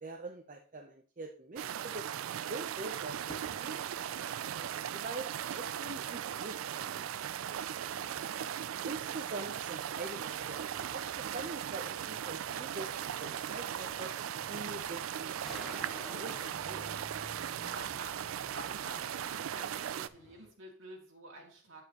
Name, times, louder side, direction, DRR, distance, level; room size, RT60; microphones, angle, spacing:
voice 1, 0.0-3.8 4.4-7.1 7.6-7.7 8.9-14.1 14.5-15.7 16.1-16.9, right 2 dB, 40° right, 2 dB, 0.7 m, -44 dB
sound 1, 1.6-20.1, right 10 dB, 85° right, 0.4 m, -38 dB
sound 2, 2.9-20.5, equal, 20° left, 1.9 m, -57 dB
voice 2, 7.9-8.7 17.6-21.8, right 1 dB, 65° right, -1 dB, 2.4 m, -50 dB
sound 3, 14.4-16.5, equal, ahead, 1.7 m, -47 dB
8.1 x 8.0 x 2.9 m, 0.42 s
head